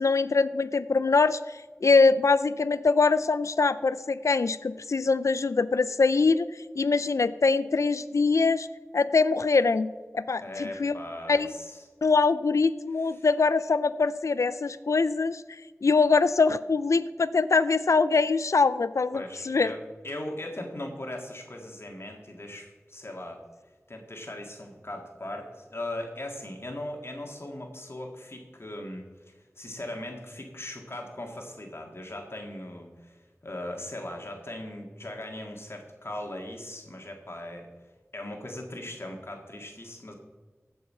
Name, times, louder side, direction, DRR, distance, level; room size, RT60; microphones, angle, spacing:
voice 1, 0.0-6.5 6.8-8.7 8.9-9.9 10.1-11.0 11.3-11.5 12.0-19.7, left 4 dB, 80° left, 15 dB, 0.4 m, -23 dB
voice 2, 10.4-11.8 13.0-13.3 19.1-23.4 23.9-37.7 38.1-40.1, left 1 dB, 50° left, 2 dB, 1.8 m, -39 dB
15.0 x 5.5 x 5.5 m, 1.3 s
wide cardioid pair, 45°, 5 cm